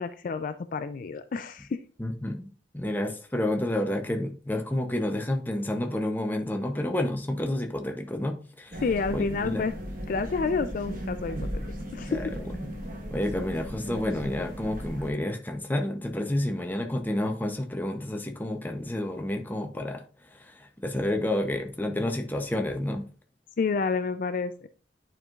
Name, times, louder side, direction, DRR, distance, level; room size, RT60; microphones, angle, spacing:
voice 1, 0.0-1.8 8.8-9.7 10.1-11.6 11.9-12.3 23.6-24.5, left 4 dB, 45° left, 10 dB, 0.3 m, -29 dB
voice 2, 2.0-2.5 2.7-8.8 9.1-9.6 12.1-12.3 13.1-23.0, left 1 dB, 10° left, 4 dB, 0.7 m, -30 dB
sound 1, 8.7-15.1, equal, 50° right, 1.2 m, -36 dB
10.5 x 4.6 x 2.4 m, 0.39 s
head